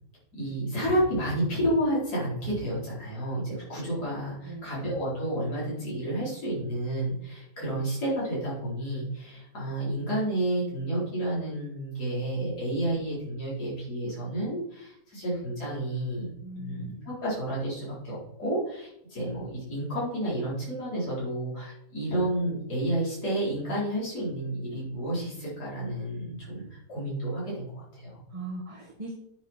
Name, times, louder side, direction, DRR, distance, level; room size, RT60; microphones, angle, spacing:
voice 1, 0.3-26.6 26.9-28.2, right 1 dB, 65° left, -7 dB, 5.0 m, -30 dB
voice 2, 4.5-4.8 16.4-17.1 28.3-29.1, right 2 dB, 20° right, -2 dB, 1.5 m, -39 dB
9.4 x 8.4 x 4.5 m, 0.76 s
omnidirectional pair, 1.8 m